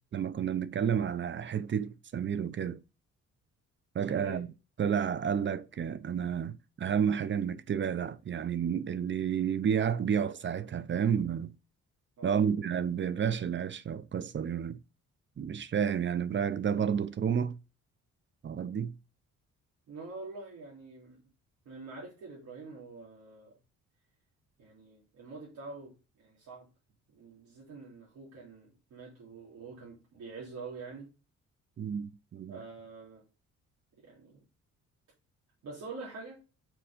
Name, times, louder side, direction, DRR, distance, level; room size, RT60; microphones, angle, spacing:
voice 1, 0.1-2.8 3.9-4.5 4.8-11.6 12.2-14.8 15.4-17.6 18.4-18.9 31.8-32.6, right 8 dB, 40° right, 0.6 m, -31 dB
voice 2, 4.1-4.4 12.2-12.5 19.9-21.2 21.6-23.6 24.6-26.7 27.1-31.1 32.5-33.2 34.0-34.4 35.6-36.4, right 3 dB, 65° right, 3.2 m, -45 dB
6.1 x 4.7 x 5.0 m
cardioid pair, 90°, 30 cm